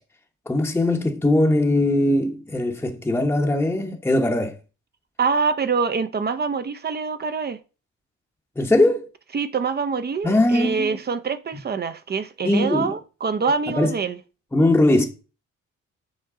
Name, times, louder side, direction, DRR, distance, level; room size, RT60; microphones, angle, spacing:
voice 1, 0.5-4.5 8.6-9.1 10.2-11.0 12.4-12.9 13.7-13.9 14.5-15.1, left 1 dB, 5° left, 0.9 m, -20 dB
voice 2, 5.2-7.6 9.3-14.2, right 5 dB, 35° right, 0.6 m, -25 dB
7.3 x 4.5 x 3.7 m
cardioid pair, 90°, 30 cm